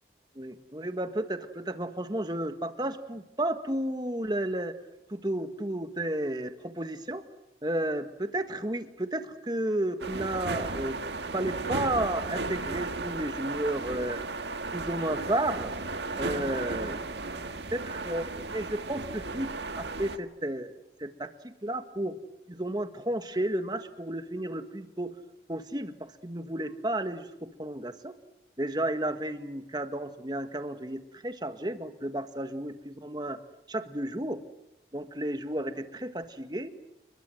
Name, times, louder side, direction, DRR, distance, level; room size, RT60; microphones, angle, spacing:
voice 1, 0.3-4.7 5.1-7.2 7.6-11.0 11.3-14.2 14.7-15.7 16.2-17.2 17.7-20.7 21.0-22.2 22.5-25.1 25.5-27.3 27.6-28.2 28.6-33.4 33.7-34.4 34.9-36.7, right 1 dB, 25° right, 9 dB, 1.6 m, -32 dB
sound 1, 10.0-20.2, right 3 dB, 80° right, 1.7 m, -35 dB
30.0 x 22.0 x 7.9 m, 0.84 s
head